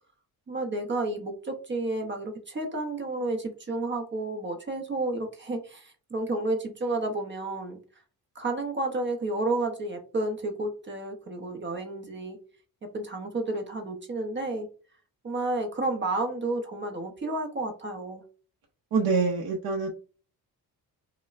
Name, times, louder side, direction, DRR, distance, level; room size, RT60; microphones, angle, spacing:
voice 1, 0.5-7.8 8.3-12.4 12.8-14.7 15.2-18.2, right 2 dB, 30° right, 4 dB, 0.6 m, -31 dB
voice 2, 18.9-19.9, right 4 dB, 70° right, 1 dB, 0.7 m, -25 dB
5.2 x 2.1 x 2.4 m, 0.37 s
wide cardioid pair, 165°, 37 cm